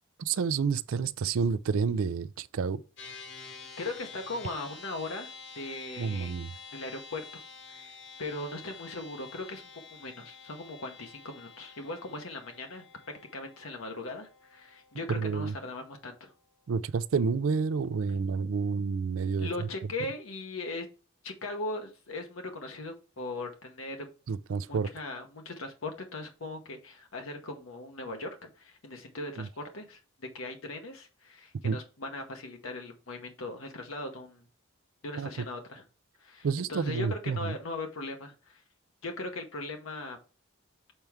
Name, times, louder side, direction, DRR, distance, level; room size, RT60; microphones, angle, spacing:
voice 1, 0.2-2.8 6.0-6.5 15.1-15.5 16.7-19.7 24.3-24.9 29.4-29.5 31.6-31.8 35.2-35.3 36.4-37.6, right 5 dB, 85° right, 0.4 m, -29 dB
sound 1, 3.0-16.5, left 5 dB, 60° left, 1.2 m, -49 dB
voice 2, 3.5-6.4 6.7-7.2 7.7-9.6 9.9-12.8 13.3-16.3 19.4-20.9 21.2-24.1 24.7-30.0 30.3-34.5 35.0-35.8 36.2-38.6 39.0-40.2, left 2 dB, 85° left, 1.0 m, -39 dB
6.7 x 4.5 x 3.5 m
head